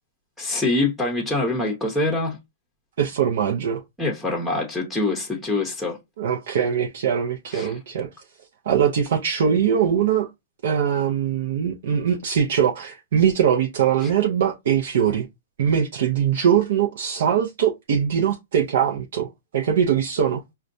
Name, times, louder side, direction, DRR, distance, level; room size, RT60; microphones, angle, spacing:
voice 1, 0.4-2.4 4.0-6.0 7.5-7.7 14.0-14.1, left 2 dB, ahead, 0.8 m, -24 dB
voice 2, 3.0-3.8 6.2-8.1 8.7-10.3 10.6-15.3 15.6-20.4, right 8 dB, 65° right, 0.6 m, -22 dB
4.9 x 2.2 x 2.6 m
hypercardioid pair, 140°, 0 cm